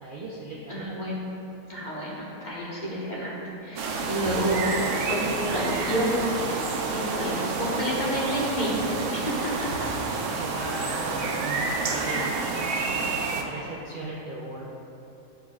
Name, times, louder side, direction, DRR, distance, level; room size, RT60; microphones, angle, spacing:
voice 1, 0.0-0.9 10.1-12.6 13.5-14.7, right 2 dB, 50° right, -5 dB, 0.6 m, -38 dB
voice 2, 0.7-1.2 1.7-3.4 3.6-4.6 5.1-6.2 6.5-6.6 6.9-8.7 9.1-9.5 9.8-9.9, equal, 35° left, -7 dB, 1.3 m, -29 dB
sound 1, 3.8-13.4, right 4 dB, 70° right, 0.9 m, -29 dB
10.5 x 4.5 x 2.4 m, 3.0 s
omnidirectional pair, 1.4 m